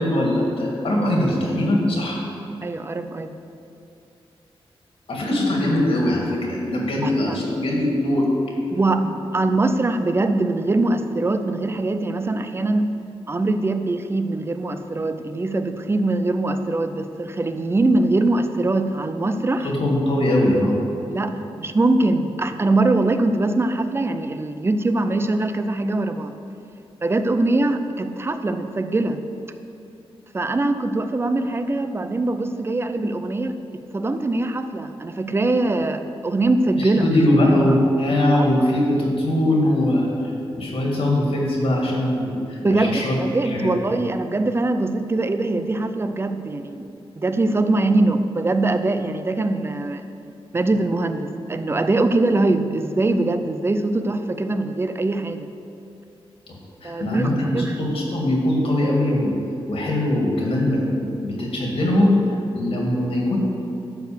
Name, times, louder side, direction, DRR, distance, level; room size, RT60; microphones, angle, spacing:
voice 1, 0.0-2.2 5.1-8.3 19.6-20.8 36.8-43.7 56.8-59.3 59.7-62.2 62.5-63.4, left 1 dB, 70° left, -2 dB, 2.4 m, -21 dB
voice 2, 2.6-3.3 7.0-7.4 8.7-12.9 13.3-19.7 21.1-26.3 27.0-29.2 30.3-37.1 37.5-37.8 38.4-38.5 42.6-46.9 47.2-50.0 50.5-55.5 56.8-57.9, right 2 dB, 25° right, 9 dB, 0.5 m, -22 dB
12.5 x 4.7 x 7.0 m, 2.6 s
wide cardioid pair, 115°, 10 cm